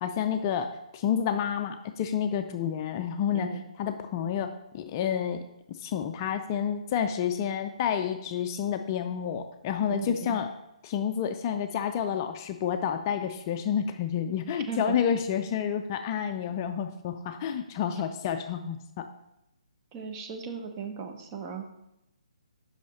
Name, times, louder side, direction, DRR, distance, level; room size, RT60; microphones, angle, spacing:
voice 1, 0.0-3.5 3.8-5.4 5.8-10.5 10.8-19.1, left 8 dB, 30° left, 7 dB, 0.4 m, -29 dB
voice 2, 9.9-10.4 14.5-15.0 19.9-21.7, right 6 dB, 25° right, 5 dB, 0.8 m, -37 dB
6.3 x 5.5 x 4.1 m, 0.87 s
figure-of-eight pair, 135°, 4 cm